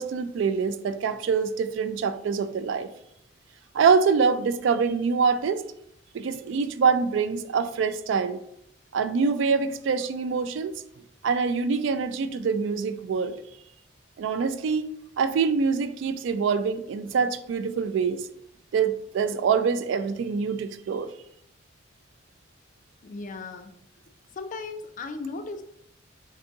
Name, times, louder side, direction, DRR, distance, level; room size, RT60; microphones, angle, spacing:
voice 1, 0.0-2.9 3.7-5.6 6.1-8.4 8.9-10.8 11.2-13.4 14.2-14.9 15.2-18.3 18.7-21.1, right 5 dB, 65° right, 0.3 m, -25 dB
voice 2, 23.0-23.7 24.3-25.6, left 3 dB, 40° left, 0.4 m, -36 dB
3.9 x 2.6 x 3.6 m
head